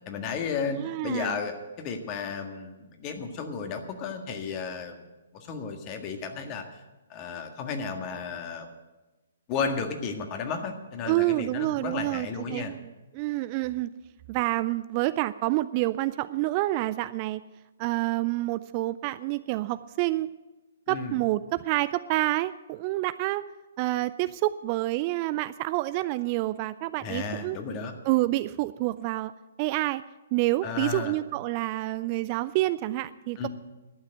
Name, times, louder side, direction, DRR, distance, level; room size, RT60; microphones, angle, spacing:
voice 1, 0.1-5.0 5.3-6.8 7.1-8.7 9.5-12.7 20.9-21.2 27.0-27.9 30.6-31.2 33.4-33.5, left 5 dB, 30° left, 5 dB, 1.7 m, -33 dB
voice 2, 0.7-1.4 11.1-13.9 14.3-17.4 17.8-20.3 20.9-23.4 23.8-27.6 28.0-29.3 29.6-30.0 30.3-33.5, right 18 dB, 35° right, 14 dB, 0.4 m, -28 dB
12.0 x 9.0 x 9.0 m, 1.1 s
figure-of-eight pair, 125°, 0 cm